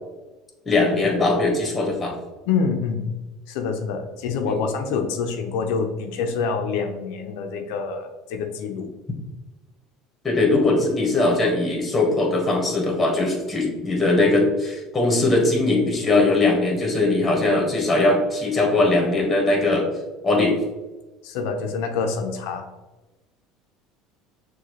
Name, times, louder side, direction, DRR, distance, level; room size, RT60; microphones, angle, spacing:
voice 1, 0.6-2.1 4.4-4.6 10.2-19.9 20.2-20.6, left 2 dB, 20° left, 0 dB, 1.5 m, -20 dB
voice 2, 2.5-3.1 3.5-8.9 21.2-22.6, left 5 dB, 75° left, 5 dB, 0.6 m, -26 dB
6.4 x 2.4 x 3.1 m, 1.1 s
supercardioid pair, 85°, 0 cm